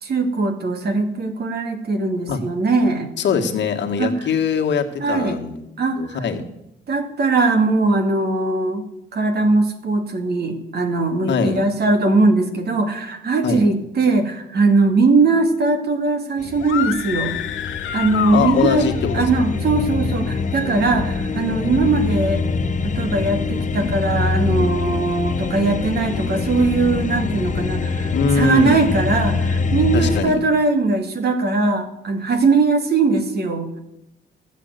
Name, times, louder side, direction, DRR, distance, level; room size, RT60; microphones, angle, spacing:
voice 1, 0.0-3.1 4.0-4.1 5.0-5.4 5.8-6.2 6.9-8.8 9.1-17.3 17.9-22.4 22.8-33.8, right 3 dB, 55° right, 6 dB, 2.3 m, -20 dB
voice 2, 3.2-5.6 6.0-6.4 11.3-11.6 13.4-13.6 18.3-19.3 28.1-28.9 29.9-30.4, left 5 dB, 65° left, 4 dB, 1.8 m, -21 dB
sound 1, 16.4-30.2, left 4 dB, 40° left, 1.0 m, -24 dB
sound 2, 16.6-19.2, left 10 dB, 80° left, 1.2 m, -27 dB
13.5 x 8.1 x 8.1 m, 0.87 s
cardioid pair, 90°, 20 cm